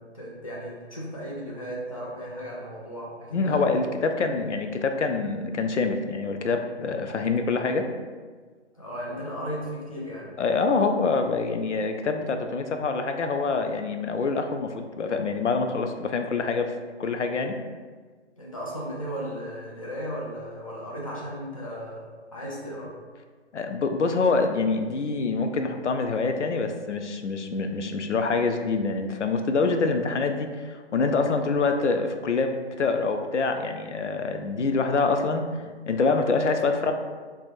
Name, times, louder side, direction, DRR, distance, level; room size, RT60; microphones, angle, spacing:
voice 1, 0.0-3.7 8.7-10.3 18.4-22.9, equal, 30° left, -5 dB, 0.6 m, -35 dB
voice 2, 3.3-7.9 10.4-16.7 17.0-17.5 23.5-35.4 35.9-36.9, left 4 dB, 85° left, 6 dB, 0.5 m, -25 dB
3.3 x 2.2 x 4.3 m, 1.5 s
figure-of-eight pair, 160°, 34 cm